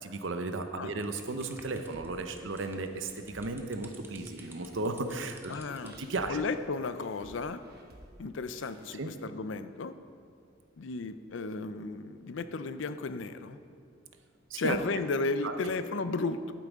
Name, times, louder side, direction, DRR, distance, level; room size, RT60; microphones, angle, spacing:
voice 1, 0.0-5.5 6.0-6.4 9.0-9.1 14.5-14.8 15.4-15.6, right 3 dB, 70° right, 7 dB, 0.7 m, -35 dB
sound 1, 1.0-6.1, right 2 dB, 10° right, 0.7 m, -53 dB
sound 2, 1.9-8.9, right 1 dB, 50° right, 1.1 m, -56 dB
voice 2, 5.5-5.9 6.3-7.6 8.2-9.9 10.8-13.6 14.6-16.5, left 3 dB, 70° left, 11 dB, 0.5 m, -34 dB
11.5 x 9.2 x 3.6 m, 2.4 s
head